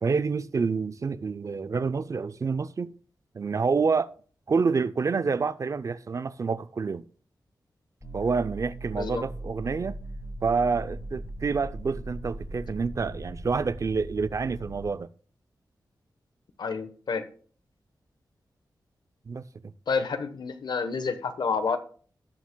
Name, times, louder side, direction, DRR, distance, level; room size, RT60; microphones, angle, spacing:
voice 1, 0.0-2.9 3.3-4.1 4.5-7.0 8.1-10.0 10.4-15.1 19.3-19.7, right 5 dB, 45° right, 0.4 m, -28 dB
sound 1, 8.0-14.9, right 1 dB, 20° left, 3.1 m, -39 dB
voice 2, 16.6-17.2 19.9-21.8, left 5 dB, 70° left, 1.0 m, -29 dB
18.5 x 7.1 x 2.2 m
wide cardioid pair, 115°, 8 cm